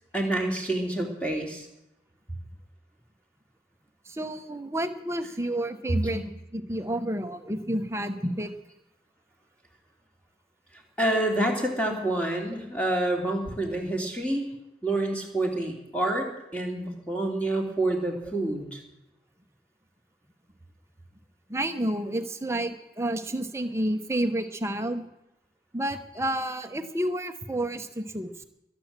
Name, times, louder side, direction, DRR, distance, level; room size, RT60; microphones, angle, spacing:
voice 1, 0.1-1.7 6.0-6.2 11.0-14.4 14.8-18.8, right 1 dB, 5° left, 1 dB, 2.8 m, -28 dB
voice 2, 4.0-6.2 6.5-8.5 21.5-25.1 25.7-28.4, right 1 dB, 15° right, 7 dB, 1.0 m, -30 dB
21.5 x 8.8 x 7.5 m, 0.89 s
head